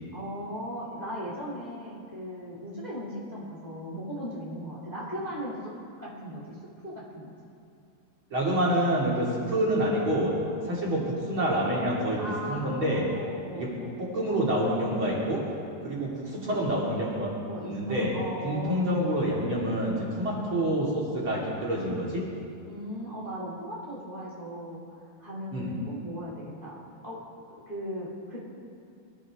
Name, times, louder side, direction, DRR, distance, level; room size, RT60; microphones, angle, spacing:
voice 1, 0.1-5.7 6.0-6.6 6.8-7.3 12.2-13.9 17.5-18.8 22.6-24.8 25.2-26.8 27.0-27.2 27.6-28.4, equal, 70° left, -6 dB, 0.4 m, -37 dB
voice 2, 8.3-10.3 10.7-12.2 12.5-13.0 13.5-13.7 14.0-15.4 15.8-17.3 17.6-18.1 18.4-22.2 25.5-25.7, right 1 dB, 35° right, -6 dB, 2.5 m, -27 dB
23.0 x 13.5 x 3.7 m, 2.5 s
omnidirectional pair, 5.7 m